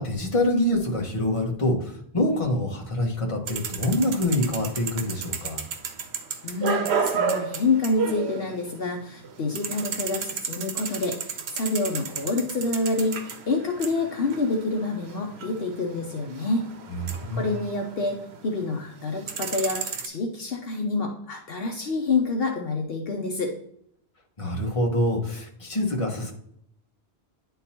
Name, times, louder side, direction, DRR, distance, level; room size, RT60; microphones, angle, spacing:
voice 1, 0.0-5.6 16.9-17.5 24.4-26.3, left 1 dB, 30° left, -1 dB, 1.3 m, -25 dB
sound 1, 3.5-8.9 9.2-18.5 18.9-20.1, right 6 dB, 85° right, 1.0 m, -32 dB
voice 2, 6.4-16.7 17.3-23.5, left 3 dB, 70° left, 2 dB, 1.0 m, -27 dB
9.9 x 3.8 x 2.9 m, 0.69 s
omnidirectional pair, 1.1 m